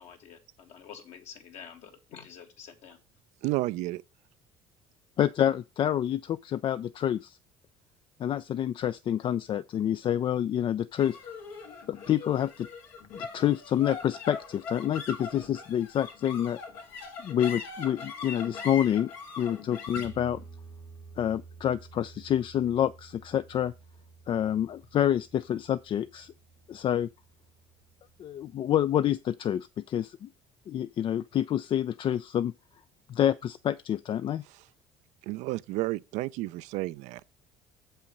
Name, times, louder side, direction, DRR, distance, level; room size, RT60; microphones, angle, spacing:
voice 1, 0.0-3.0, left 7 dB, 65° left, 2.0 m, -48 dB
voice 2, 3.4-4.0 35.3-37.4, right 19 dB, 75° right, 0.4 m, -31 dB
voice 3, 5.2-7.4 8.2-11.2 11.9-12.7 13.1-16.6 17.2-19.1 19.4-20.4 21.2-23.7 24.3-26.3 26.7-27.1 28.2-30.3 30.7-32.5 33.1-34.4, left 10 dB, 45° left, 0.4 m, -28 dB
sound 1, 11.0-27.5, left 4 dB, 90° left, 2.4 m, -43 dB
7.2 x 5.6 x 5.2 m
supercardioid pair, 90°, 12 cm